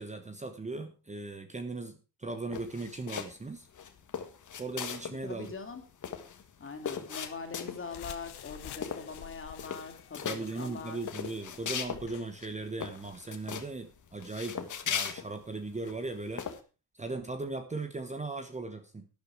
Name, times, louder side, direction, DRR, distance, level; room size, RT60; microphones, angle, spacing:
voice 1, 0.0-3.7 4.6-5.5 10.2-16.5 16.9-19.1, right 3 dB, 15° right, 8 dB, 1.1 m, -38 dB
sound 1, 2.5-3.4 3.7-5.2 5.4-5.5 5.8-8.0 8.4-8.6 8.8-9.3 9.5-10.4 10.9-12.0 12.4-12.5 12.8-13.7 14.2-15.9 16.4-16.6, left 7 dB, 45° left, 1.7 m, -38 dB
voice 2, 5.1-5.8 6.6-11.0, left 4 dB, 30° left, 5 dB, 3.0 m, -42 dB
sound 2, 7.8-12.3, left 10 dB, 70° left, 1.4 m, -49 dB
12.0 x 10.0 x 4.7 m, 0.33 s
cardioid pair, 125°, 41 cm